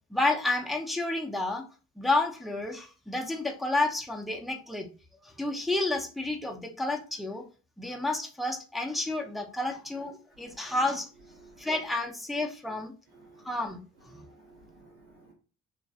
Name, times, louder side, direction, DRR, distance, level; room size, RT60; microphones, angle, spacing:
voice 1, 0.1-1.6 2.0-4.9 5.2-7.4 7.8-11.1 11.6-12.9 13.4-13.8, left 2 dB, ahead, 1 dB, 0.5 m, -30 dB
voice 2, 10.4-10.7 11.4-11.7 13.1-13.5 14.1-15.3, right 2 dB, 90° right, 0 dB, 1.4 m, -55 dB
2.7 x 2.5 x 2.3 m, 0.36 s
cardioid pair, 90°, 30 cm